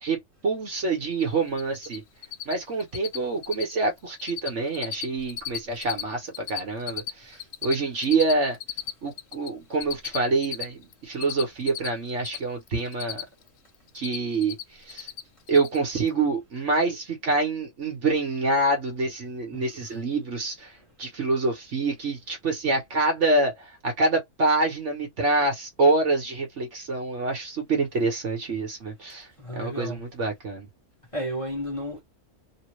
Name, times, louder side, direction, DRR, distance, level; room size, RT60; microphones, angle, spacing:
voice 1, 0.0-2.0 2.4-8.6 9.0-13.2 13.9-15.1 15.5-29.3 29.5-30.7, right 3 dB, 55° right, 1.4 m, -26 dB
Cricket, 1.1-1.2 1.5-2.0 2.2-2.5 2.8-3.2 3.4-3.7 4.0-4.5 4.7-6.0 6.3-9.5 9.8-12.4 12.7-13.5 13.7-14.6 14.9-15.2 15.5-15.8, left 10 dB, 70° left, 0.9 m, -34 dB
voice 2, 29.4-30.0 31.1-32.0, equal, 20° left, 1.5 m, -32 dB
3.2 x 2.5 x 3.1 m
omnidirectional pair, 1.6 m